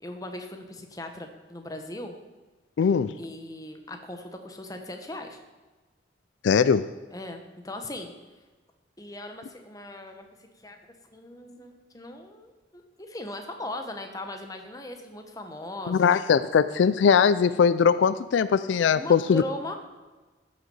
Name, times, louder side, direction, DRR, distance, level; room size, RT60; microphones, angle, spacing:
voice 1, 0.0-2.1 3.2-5.4 7.1-8.1 9.0-10.3 10.6-10.8 11.1-16.2 18.9-19.8, left 1 dB, 20° left, 5 dB, 1.0 m, -39 dB
voice 2, 2.8-3.2 6.4-6.9 15.9-19.4, left 6 dB, 80° left, 15 dB, 0.3 m, -21 dB
14.0 x 6.5 x 5.4 m, 1.2 s
head